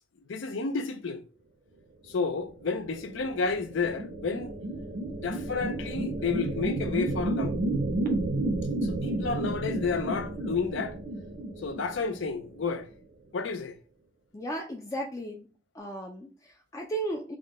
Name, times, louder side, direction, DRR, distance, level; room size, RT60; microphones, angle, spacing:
voice 1, 0.3-1.2 2.1-4.5 5.2-7.5 8.8-10.9 11.6-12.9 13.3-13.8, left 4 dB, 85° left, 0.5 m, -31 dB
sound 1, 2.8-12.6, right 2 dB, 45° right, 0.6 m, -31 dB
voice 2, 14.3-15.5 15.7-17.4, right 1 dB, 15° left, 0.3 m, -35 dB
3.5 x 2.2 x 3.5 m
head